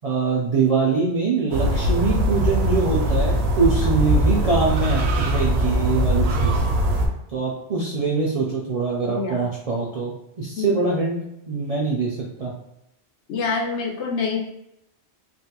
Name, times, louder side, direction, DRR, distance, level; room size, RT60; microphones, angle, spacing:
voice 1, 0.0-6.6 7.3-12.5, right 4 dB, 55° right, -4 dB, 0.4 m, -23 dB
sound 1, 1.5-7.1, right 1 dB, 70° right, 0.8 m, -21 dB
voice 2, 9.1-9.5 10.6-10.7 13.3-14.4, left 4 dB, 75° left, 0 dB, 0.9 m, -26 dB
3.2 x 2.2 x 2.8 m, 0.83 s
omnidirectional pair, 1.1 m